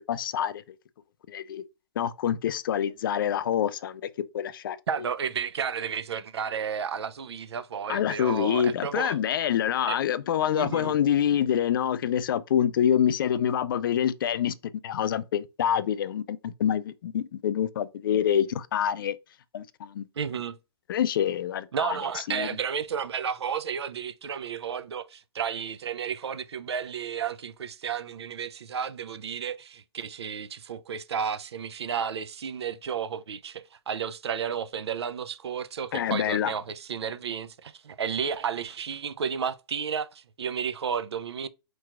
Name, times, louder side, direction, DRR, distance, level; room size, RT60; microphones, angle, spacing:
voice 1, 0.1-0.6 1.3-1.6 2.0-4.0 4.3-4.8 7.9-14.5 14.8-19.2 19.5-20.1 20.9-22.0 22.3-22.5 35.9-36.5, left 9 dB, 55° left, 0.4 m, -26 dB
voice 2, 4.9-9.2 9.9-10.0 10.5-11.0 20.2-20.6 21.7-41.5, right 7 dB, 75° right, 0.5 m, -32 dB
4.5 x 3.0 x 2.3 m
hypercardioid pair, 140°, 14 cm